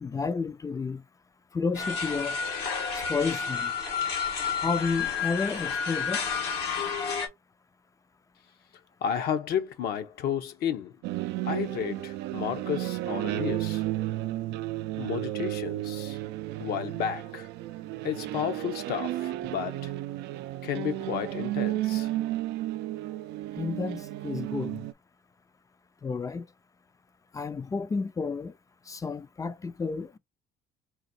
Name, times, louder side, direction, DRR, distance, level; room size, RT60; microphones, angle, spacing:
voice 1, 0.0-1.0 1.5-2.4 2.9-3.7 4.6-6.2 23.6-24.8 26.0-26.5 27.3-28.5 28.9-30.2, left 4 dB, 20° left, 0.4 m, -31 dB
sound 1, 1.7-7.3, left 6 dB, 85° left, 1.4 m, -30 dB
voice 2, 9.0-11.0 11.4-13.8 15.0-16.2 16.6-17.5 18.0-19.9 20.6-22.1, left 8 dB, 70° left, 0.8 m, -32 dB
sound 2, 11.0-24.9, right 16 dB, 85° right, 0.4 m, -33 dB
4.0 x 2.6 x 4.2 m
cardioid pair, 110°, 17 cm